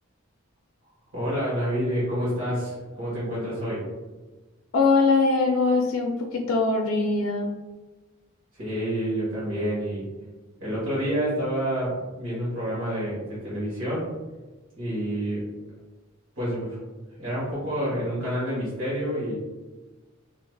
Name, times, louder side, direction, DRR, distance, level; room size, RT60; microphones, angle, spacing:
voice 1, 1.1-3.8 8.6-10.0 10.6-14.1 14.8-15.4 16.4-16.8 17.1-19.4, equal, 90° right, -9 dB, 1.4 m, -28 dB
voice 2, 4.7-7.5, left 3 dB, 90° left, 1 dB, 0.4 m, -22 dB
3.2 x 2.8 x 2.3 m, 1.2 s
head